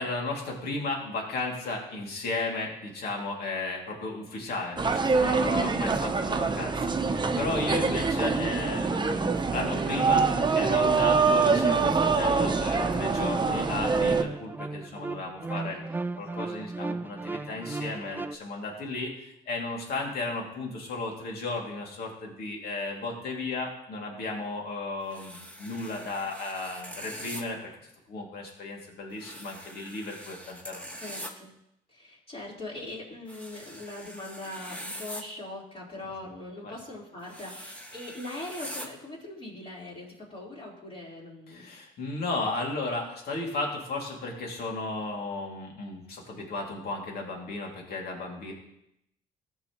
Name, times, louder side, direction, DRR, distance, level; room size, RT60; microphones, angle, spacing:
voice 1, 0.0-15.8 16.2-27.7 28.1-30.9 36.6-36.7 41.5-48.5, left 3 dB, 70° left, 0 dB, 2.5 m, -34 dB
sound 1, 4.8-14.2, right 4 dB, 25° right, 0.9 m, -25 dB
sound 2, 7.3-18.4, right 3 dB, 10° right, 0.4 m, -36 dB
voice 2, 16.1-16.5 31.0-31.5 31.9-41.7 42.3-42.5, left 2 dB, 35° left, -6 dB, 3.8 m, -41 dB
sound 3, 25.1-27.4 29.2-31.3 33.3-35.2 37.2-38.9, equal, 10° left, 1.7 m, -42 dB
14.5 x 6.3 x 3.0 m, 0.81 s
supercardioid pair, 65°, 17 cm